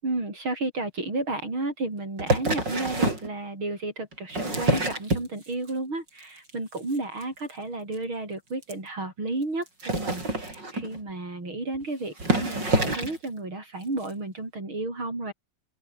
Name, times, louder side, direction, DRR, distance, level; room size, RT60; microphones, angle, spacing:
voice 1, 0.0-15.3, right 2 dB, 75° right, 8.9 m, -32 dB
sound 1, 2.2-3.3 4.1-5.7 6.1-6.5 6.8-7.0 7.2-7.3 7.5-7.6 7.9-8.0 8.6-8.7 9.7-11.0 11.7-11.8 12.2-13.3 14.0-14.1, right 2 dB, 55° right, 8.9 m, -26 dB
open air
omnidirectional pair, 2.3 m